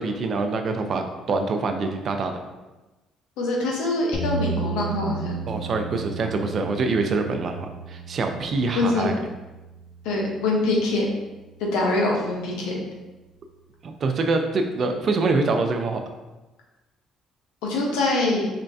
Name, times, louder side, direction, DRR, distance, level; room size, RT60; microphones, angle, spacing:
voice 1, 0.0-2.3 5.5-9.1 13.8-16.0, right 3 dB, 50° right, 5 dB, 0.5 m, -25 dB
voice 2, 3.4-5.3 8.7-9.1 10.0-11.0 11.6-12.8 17.6-18.5, left 2 dB, 90° left, -2 dB, 0.9 m, -24 dB
sound 1, 4.1-12.2, right 4 dB, 5° left, 1.1 m, -35 dB
4.3 x 3.2 x 2.7 m, 1.1 s
cardioid pair, 85°, 0 cm